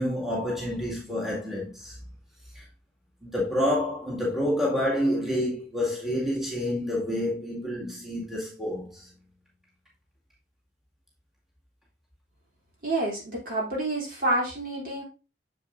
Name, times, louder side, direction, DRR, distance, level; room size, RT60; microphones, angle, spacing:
voice 1, 0.0-2.0 2.6-2.7 3.2-9.1, left 1 dB, ahead, 2.2 m, -28 dB
voice 2, 12.8-15.0, right 1 dB, 55° right, 3.2 m, -28 dB
7.2 x 7.1 x 2.6 m
head